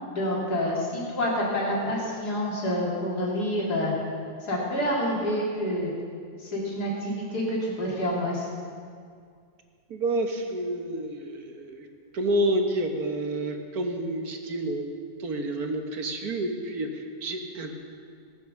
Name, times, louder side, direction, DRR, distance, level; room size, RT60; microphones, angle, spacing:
voice 1, 0.2-3.9 4.4-5.9 6.4-8.5, equal, 80° left, -4 dB, 3.7 m, -28 dB
voice 2, 9.9-11.9 12.1-14.9 15.2-17.8, right 1 dB, 70° right, 4 dB, 1.8 m, -29 dB
17.5 x 9.4 x 6.4 m, 2.2 s
omnidirectional pair, 1.7 m